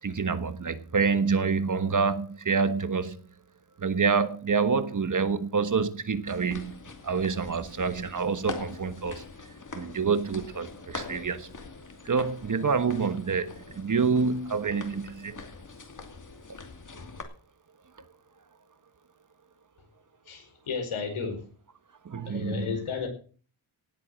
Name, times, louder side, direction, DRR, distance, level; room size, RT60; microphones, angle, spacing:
voice 1, 0.0-3.2 3.8-6.7 7.0-9.2 9.7-11.5 12.0-15.4 22.0-22.8, right 5 dB, 40° right, 12 dB, 1.4 m, -27 dB
sound 1, 6.3-17.2, left 4 dB, 40° left, 2.7 m, -43 dB
voice 2, 20.3-21.4 22.3-23.1, left 5 dB, 80° left, 5 dB, 5.3 m, -32 dB
18.0 x 8.3 x 6.3 m, 0.41 s
wide cardioid pair, 120°, 49 cm